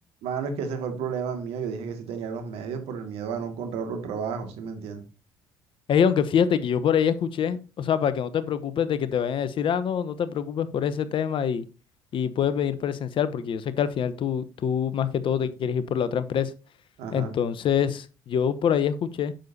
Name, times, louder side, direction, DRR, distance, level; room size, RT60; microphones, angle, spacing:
voice 1, 0.2-5.0 17.0-17.4, right 6 dB, 75° right, 6 dB, 2.1 m, -32 dB
voice 2, 5.9-11.6 12.1-16.5 17.1-19.3, left 8 dB, 55° left, 14 dB, 1.0 m, -25 dB
9.1 x 6.8 x 2.8 m, 0.32 s
hypercardioid pair, 60°, 10 cm